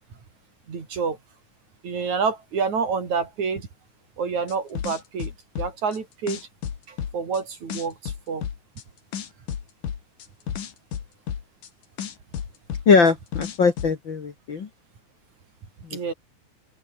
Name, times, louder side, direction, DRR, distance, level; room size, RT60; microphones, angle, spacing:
voice 1, 0.7-1.2 1.8-3.7 4.2-6.4 6.9-8.4 15.9-16.1, right 5 dB, 60° right, 5.2 m, -28 dB
sound 1, 4.5-6.0 6.3-7.4 7.7-8.8 9.1-11.7 12.0-13.9, left 8 dB, 75° left, 3.9 m, -32 dB
voice 2, 12.9-14.7, left 5 dB, 40° left, 2.1 m, -20 dB
omnidirectional pair, 3.7 m